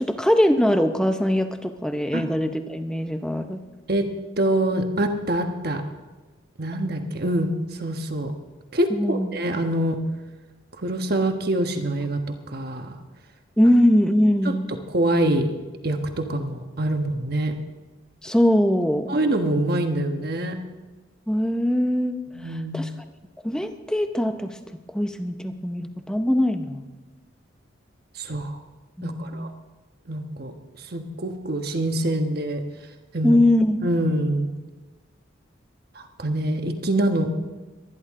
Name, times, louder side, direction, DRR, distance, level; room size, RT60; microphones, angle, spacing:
voice 1, 0.0-3.6 8.9-9.3 13.6-14.7 18.2-19.2 21.3-22.2 22.7-22.9 23.4-24.6 24.9-26.9 29.0-29.5 33.2-33.8, left 1 dB, 5° left, 7 dB, 0.7 m, -21 dB
voice 2, 4.4-5.8 6.6-8.3 8.7-10.0 10.8-12.2 12.5-12.9 14.4-14.6 14.9-15.5 15.8-17.5 19.1-20.6 22.3-23.0 28.2-28.6 29.0-29.5 30.1-30.5 30.9-32.6 33.1-33.4 33.8-34.5 35.9-37.3, right 1 dB, 50° right, 5 dB, 1.3 m, -25 dB
23.0 x 10.5 x 3.7 m, 1.2 s
head